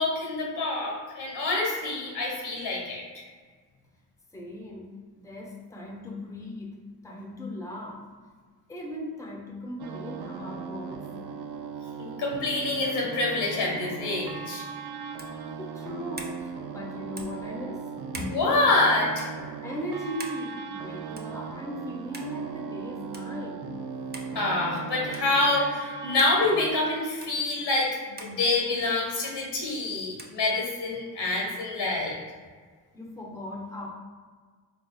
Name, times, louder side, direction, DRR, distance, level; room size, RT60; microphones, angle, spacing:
voice 1, 0.0-3.2 12.2-14.6 18.1-19.3 24.3-27.9 28.2-32.2, left 2 dB, 80° left, -2 dB, 1.4 m, -26 dB
voice 2, 4.3-6.8 7.0-8.0 8.7-11.1 15.5-17.9 19.6-23.7 32.9-33.9, left 1 dB, 10° left, -1 dB, 0.9 m, -38 dB
sound 1, 9.8-26.7, right 6 dB, 70° right, 0.5 m, -38 dB
sound 2, 15.1-15.4 16.1-16.4 17.1-17.4 18.1-18.4 19.1-19.3 20.2-20.4 21.2-21.4 22.1-22.3 23.1-23.3 24.1-24.3 25.1-25.3 26.2-26.3 27.2-27.3 28.2-28.3 29.2-29.4 30.2-30.4, right 2 dB, 25° right, 0.6 m, -42 dB
3.6 x 3.5 x 2.3 m, 1.5 s
cardioid pair, 60°, 41 cm